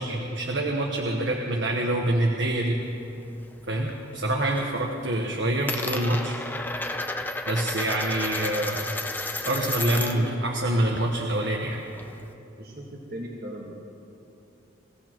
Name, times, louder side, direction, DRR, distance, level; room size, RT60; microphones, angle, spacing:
voice 1, 0.0-2.8 3.7-6.4 7.5-8.9 9.4-11.8, right 1 dB, 70° right, 0 dB, 1.2 m, -26 dB
Coin (dropping), 2.8-4.0 4.3-4.8 5.0-10.3 10.6-12.3, left 2 dB, 10° left, 0.5 m, -33 dB
voice 2, 12.6-13.8, right 1 dB, 50° right, -2 dB, 1.5 m, -38 dB
23.0 x 16.0 x 3.0 m, 2.8 s
head